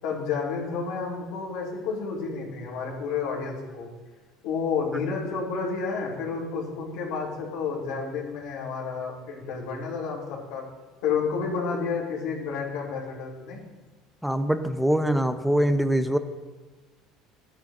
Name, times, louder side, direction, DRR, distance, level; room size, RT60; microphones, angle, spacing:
voice 1, 0.0-3.9 4.4-10.6 11.0-13.6, left 5 dB, 80° left, -3 dB, 3.6 m, -30 dB
voice 2, 14.2-16.2, right 1 dB, ahead, 9 dB, 0.7 m, -23 dB
14.5 x 9.7 x 2.6 m, 1.3 s
supercardioid pair, 115°, 0 cm